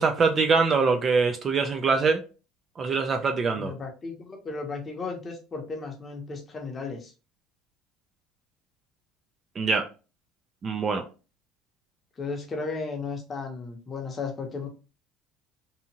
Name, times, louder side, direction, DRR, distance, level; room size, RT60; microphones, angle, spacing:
voice 1, 0.0-2.2 2.8-3.7 9.6-9.8 10.6-11.0, right 4 dB, 30° right, 0.4 m, -23 dB
voice 2, 3.5-7.1 12.2-14.7, left 4 dB, 25° left, 0.8 m, -35 dB
2.7 x 2.4 x 2.8 m
cardioid pair, 140°, 0 cm